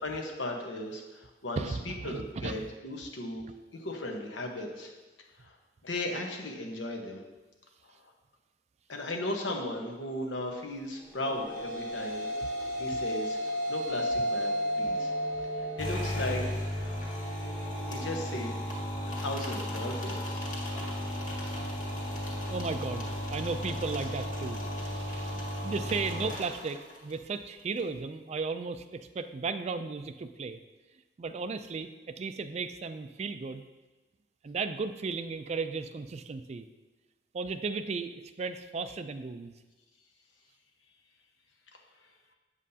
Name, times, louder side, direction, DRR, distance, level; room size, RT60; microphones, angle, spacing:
voice 1, 0.0-3.4 3.7-4.9 5.4-5.5 5.8-7.2 8.9-12.3 12.8-13.4 13.7-15.1 15.6-16.4 17.9-18.5 19.2-20.4, left 1 dB, 85° left, 1 dB, 1.1 m, -36 dB
voice 2, 1.6-2.7 12.9-13.0 22.5-30.6 31.2-33.6 34.4-36.7 37.3-39.5, right 4 dB, 35° right, 11 dB, 0.3 m, -35 dB
sound 1, 11.0-19.6, equal, 10° left, 1.1 m, -34 dB
sound 2, 15.8-27.1, equal, 45° left, 1.9 m, -35 dB
8.2 x 7.4 x 2.8 m, 1.2 s
head